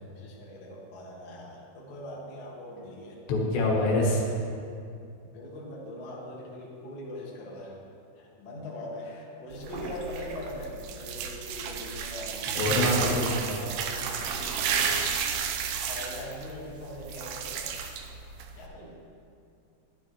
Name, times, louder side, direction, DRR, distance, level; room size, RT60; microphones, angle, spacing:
voice 1, 0.0-3.2 5.3-7.8 8.1-9.1 9.4-12.5 13.0-14.5 15.9-17.7 18.5-19.0, left 1 dB, 45° left, -4 dB, 1.6 m, -41 dB
voice 2, 3.3-4.4 12.6-13.5, left 1 dB, 85° left, -1 dB, 3.6 m, -25 dB
sound 1, 9.5-18.7, right 6 dB, 80° right, 2.6 m, -32 dB
12.0 x 12.0 x 3.1 m, 2.5 s
omnidirectional pair, 4.8 m